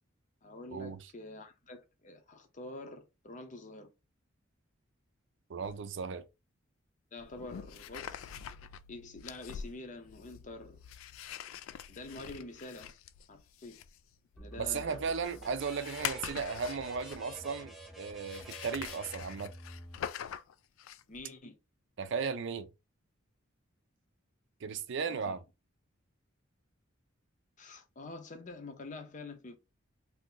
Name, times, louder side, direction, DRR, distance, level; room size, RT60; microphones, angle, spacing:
voice 1, 0.4-3.9 7.1-8.4 8.9-10.8 11.9-13.0 13.3-13.8 14.4-15.0 21.1-21.5 25.0-25.4 27.6-29.6, left 2 dB, 40° left, 0.7 m, -47 dB
voice 2, 5.5-6.2 14.6-19.5 22.0-22.7 24.6-25.4, right 5 dB, 60° right, 0.4 m, -36 dB
sound 1, 5.6-5.8 7.2-17.5 18.3-21.2, left 9 dB, 75° left, 0.3 m, -44 dB
sound 2, 14.4-20.0, right 1 dB, ahead, 0.5 m, -49 dB
2.7 x 2.5 x 3.8 m
head